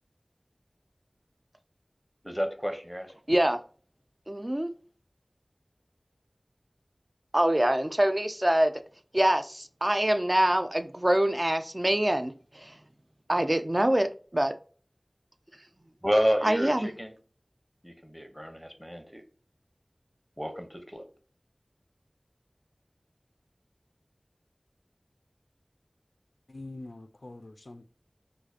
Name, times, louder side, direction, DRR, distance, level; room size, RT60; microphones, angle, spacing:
voice 1, 2.2-3.1 16.0-17.1 17.8-19.2 20.4-21.0, equal, 5° left, 0.7 m, -30 dB
voice 2, 3.3-3.6 4.3-4.7 7.3-8.8 9.1-12.8 13.3-14.5 16.4-16.9, right 1 dB, 35° right, 0.3 m, -25 dB
voice 3, 26.5-27.8, left 2 dB, 85° left, 0.3 m, -44 dB
4.6 x 2.4 x 2.4 m
wide cardioid pair, 45°, 0 cm